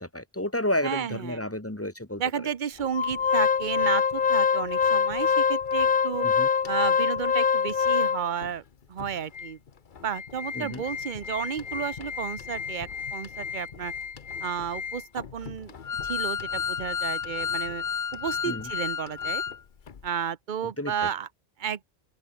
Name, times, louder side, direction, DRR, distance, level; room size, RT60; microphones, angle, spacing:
voice 1, 0.0-2.2 6.2-6.5 10.5-10.8 18.4-18.7 20.6-21.1, left 1 dB, 15° left, 1.6 m, -31 dB
voice 2, 0.8-1.4 2.2-6.3 6.7-8.6 8.9-9.6 10.0-13.9 14.4-15.7 16.0-17.8 18.1-19.4 20.0-21.3 21.6-21.8, right 8 dB, 50° right, 1.0 m, -32 dB
Organ, 2.9-8.5 9.0-9.1 9.3-9.5 10.0-19.6 19.9-20.0, left 6 dB, 50° left, 1.1 m, -27 dB
open air
omnidirectional pair, 1.1 m